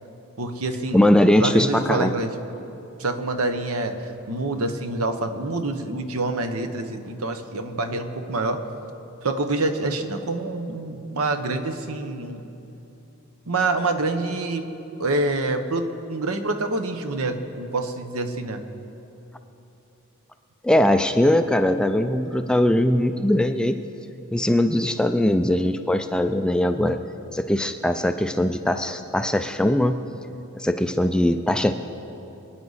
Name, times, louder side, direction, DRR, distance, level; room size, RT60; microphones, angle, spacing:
voice 1, 0.4-1.0 1.4-2.3 3.0-8.6 9.2-12.4 13.5-14.6 15.0-18.6, right 2 dB, 75° right, 7 dB, 1.0 m, -26 dB
voice 2, 0.9-2.1 20.6-23.8 24.3-27.0 27.3-30.0 30.5-31.7, left 1 dB, 5° left, 8 dB, 0.3 m, -20 dB
24.5 x 9.5 x 4.1 m, 2.9 s
head